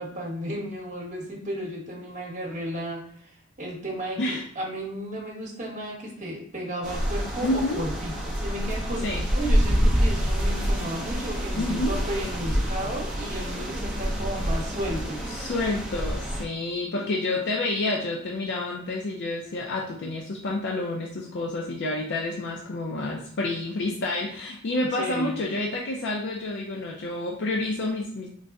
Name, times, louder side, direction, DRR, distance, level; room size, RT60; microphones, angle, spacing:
voice 1, 0.0-15.2 24.9-25.4, right 1 dB, 35° right, -2 dB, 1.1 m, -34 dB
sound 1, 6.8-16.4, equal, 5° right, 0.7 m, -27 dB
voice 2, 7.4-7.8 9.0-9.2 11.5-12.0 15.3-28.3, left 2 dB, 50° left, -1 dB, 0.5 m, -29 dB
3.9 x 2.1 x 3.4 m, 0.63 s
head